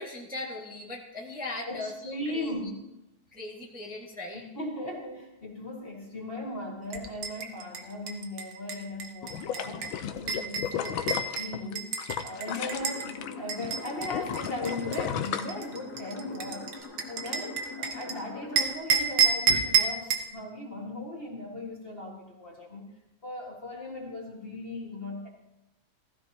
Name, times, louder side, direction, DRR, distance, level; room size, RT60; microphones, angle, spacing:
voice 1, 0.0-2.5 3.3-4.4, left 2 dB, 5° right, -3 dB, 1.6 m, -39 dB
voice 2, 1.7-2.9 4.3-9.9 10.2-11.9 12.2-16.7 17.0-22.9 23.2-25.3, left 1 dB, 30° left, -2 dB, 2.0 m, -38 dB
sound 1, 6.9-13.1 13.5-18.1 18.6-20.3, right 6 dB, 70° right, 1.8 m, -30 dB
sound 2, 9.2-13.3 13.6-16.2 16.6-16.7, left 9 dB, 85° left, 1.5 m, -34 dB
sound 3, 12.5-18.7, left 5 dB, 55° left, 1.9 m, -42 dB
15.5 x 15.0 x 2.9 m, 0.92 s
omnidirectional pair, 2.1 m